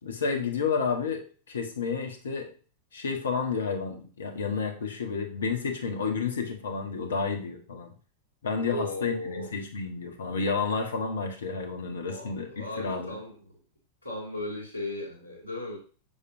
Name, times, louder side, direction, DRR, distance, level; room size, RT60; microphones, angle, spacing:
voice 1, 0.0-2.5 2.9-7.9 8.4-13.2, left 5 dB, 65° left, 5 dB, 1.3 m, -31 dB
voice 2, 8.7-9.5 12.0-13.4 14.0-15.8, left 1 dB, 90° right, -1 dB, 2.7 m, -36 dB
7.0 x 6.9 x 2.7 m, 0.39 s
figure-of-eight pair, 90°, 0 cm